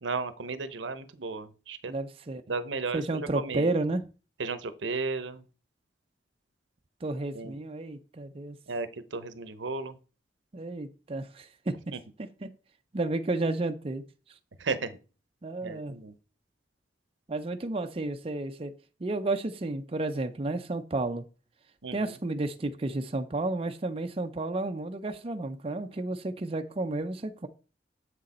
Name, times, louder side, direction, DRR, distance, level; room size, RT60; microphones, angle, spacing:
voice 1, 0.0-1.9 2.5-3.7 4.4-5.4 7.3-7.6 8.7-10.0 11.9-12.0 14.6-15.0 15.6-16.1 21.8-22.1, right 4 dB, 85° right, 0.8 m, -34 dB
voice 2, 1.9-2.4 2.9-4.0 7.0-8.6 10.5-11.9 12.4-12.5 12.9-14.1 15.4-16.0 17.3-18.7 19.0-21.2 21.9-27.5, right 2 dB, 30° right, 0.5 m, -32 dB
7.6 x 6.4 x 4.2 m
head